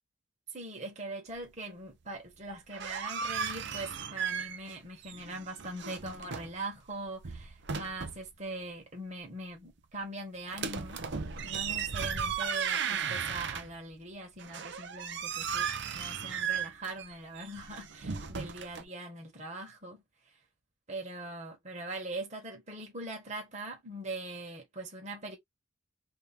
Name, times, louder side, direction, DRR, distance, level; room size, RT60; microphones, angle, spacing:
voice 1, 0.5-11.0 11.4-20.0 20.9-25.4, right 2 dB, 35° right, 1.3 m, -41 dB
sound 1, 2.5-4.8 5.0-6.6 7.1-8.3 10.5-13.9 14.4-18.8, right 7 dB, 55° right, 0.6 m, -36 dB
3.4 x 2.8 x 3.4 m
head